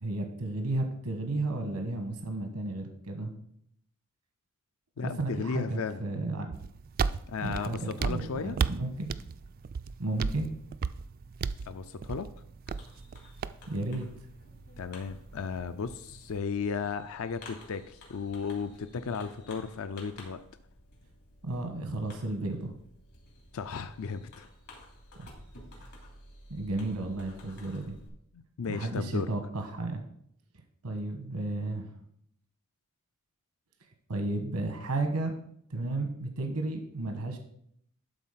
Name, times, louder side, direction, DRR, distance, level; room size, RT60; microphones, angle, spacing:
voice 1, 0.0-3.3 5.0-6.5 7.4-9.1 10.0-10.5 13.7-14.1 21.4-22.7 25.2-25.3 26.5-27.9 28.7-30.0 30.8-31.9 34.1-35.3 35.7-37.4, right 2 dB, 85° right, 5 dB, 1.3 m, -33 dB
voice 2, 5.0-6.0 7.3-8.6 11.7-12.3 14.8-20.4 23.5-24.5 28.3-29.3, left 5 dB, 65° left, 10 dB, 0.4 m, -35 dB
sound 1, 6.5-16.4, right 5 dB, 40° right, 0.3 m, -36 dB
Fireworks, 12.7-28.1, left 1 dB, 80° left, 3.2 m, -53 dB
12.0 x 4.0 x 5.7 m, 0.70 s
head